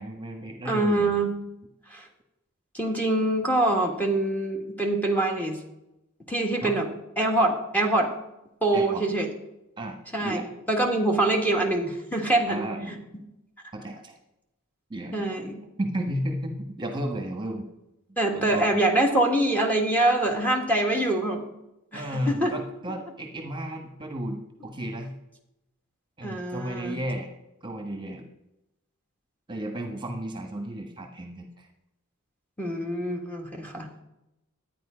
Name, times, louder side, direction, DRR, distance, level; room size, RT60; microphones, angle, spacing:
voice 1, 0.0-1.2 6.6-6.8 8.7-9.0 9.8-10.5 12.5-13.1 13.7-14.1 14.9-15.3 15.8-17.7 18.3-18.8 21.9-25.1 26.2-27.3 27.6-28.2 29.5-31.7, right 1 dB, 20° right, 4 dB, 1.3 m, -33 dB
voice 2, 0.6-1.3 1.9-2.0 2.7-5.6 6.3-6.8 7.2-8.1 8.6-9.3 10.1-10.4 10.7-12.9 15.1-15.6 18.2-21.4 21.9-22.5 26.2-27.0 32.6-33.9, right 2 dB, 5° left, 1 dB, 1.6 m, -24 dB
12.0 x 9.4 x 5.1 m, 0.91 s
head